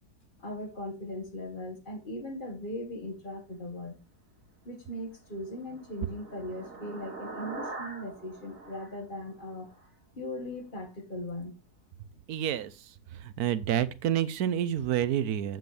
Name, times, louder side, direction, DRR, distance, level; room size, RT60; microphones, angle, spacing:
voice 1, 0.4-4.0 4.7-9.7 10.2-11.5, left 1 dB, 30° left, 1.8 m, -39 dB
sound 1, 5.1-9.8, right 3 dB, 60° right, 2.6 m, -43 dB
voice 2, 12.3-12.7 13.2-15.6, right 10 dB, 75° right, 1.2 m, -28 dB
9.1 x 7.7 x 3.3 m
omnidirectional pair, 1.7 m